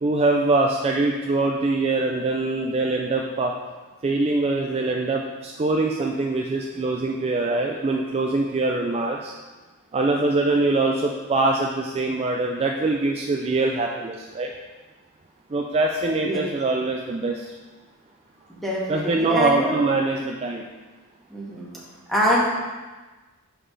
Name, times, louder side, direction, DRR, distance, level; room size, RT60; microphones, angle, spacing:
voice 1, 0.0-3.5 4.0-9.3 9.9-14.5 15.5-17.5 18.9-20.6, right 2 dB, 30° right, 0 dB, 0.4 m, -23 dB
voice 2, 18.5-19.7 21.3-21.7 22.1-22.5, equal, ahead, -6 dB, 1.5 m, -24 dB
7.0 x 5.7 x 3.3 m, 1.2 s
head